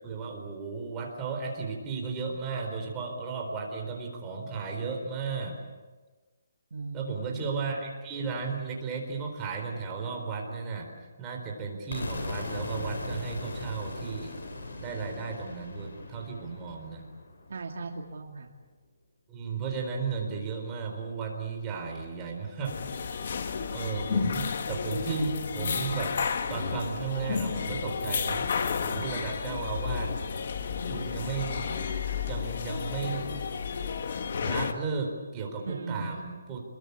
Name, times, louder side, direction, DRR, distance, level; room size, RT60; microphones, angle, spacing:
voice 1, 0.0-5.6 6.9-10.9 11.2-14.4 14.8-17.0 19.3-22.8 23.7-26.1 26.5-28.4 28.8-30.1 30.9-31.7 32.3-33.3 34.4-36.6, right 5 dB, 15° right, 1 dB, 4.3 m, -34 dB
voice 2, 6.7-7.5 17.5-18.5 35.6-36.2, right 3 dB, 60° right, 2 dB, 2.6 m, -38 dB
sound 1, 11.9-17.8, left 2 dB, 80° left, 7.7 m, -39 dB
sound 2, 22.6-34.7, left 6 dB, 50° left, 1.8 m, -32 dB
27.5 x 22.0 x 8.5 m, 1.3 s
hypercardioid pair, 170°, 0 cm